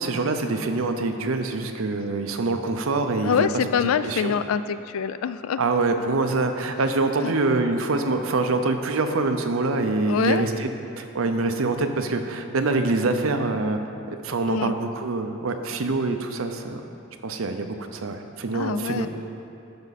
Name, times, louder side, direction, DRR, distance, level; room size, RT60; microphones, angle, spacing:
voice 1, 0.0-3.5 4.0-4.4 5.6-10.7 11.0-13.8 14.2-16.8 17.2-19.1, right 3 dB, 70° right, 6 dB, 0.6 m, -25 dB
voice 2, 3.2-5.6 7.2-7.3 10.1-10.5 14.5-14.7 18.5-19.1, left 7 dB, 75° left, 12 dB, 0.3 m, -25 dB
12.0 x 5.6 x 4.1 m, 2.7 s
head